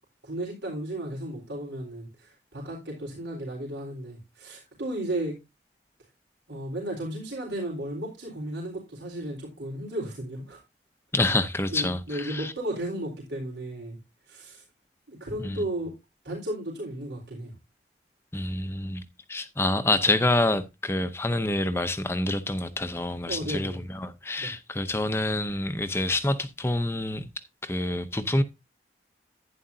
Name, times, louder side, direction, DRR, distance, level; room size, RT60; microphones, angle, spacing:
voice 1, 0.2-5.4 6.5-10.6 11.7-14.0 14.3-14.6 15.1-15.9 16.2-17.5 23.3-23.8 24.4-24.5, right 1 dB, 85° right, 4.0 m, -34 dB
voice 2, 11.1-12.5 15.4-15.6 18.3-19.0 19.3-27.3 27.6-28.4, left 2 dB, 15° left, 0.6 m, -27 dB
11.5 x 9.8 x 2.7 m
head